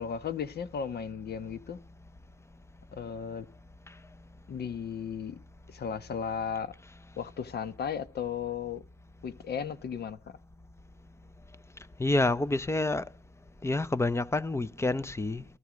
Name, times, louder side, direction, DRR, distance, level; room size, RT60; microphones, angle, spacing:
voice 1, 0.0-1.8 2.9-3.5 4.5-5.4 5.7-6.7 7.2-8.8 9.2-10.4, left 7 dB, 55° left, 1.1 m, -35 dB
voice 2, 12.0-13.0 13.6-15.4, left 2 dB, 15° left, 0.7 m, -28 dB
13.0 x 12.5 x 5.1 m
cardioid pair, 90°, 20 cm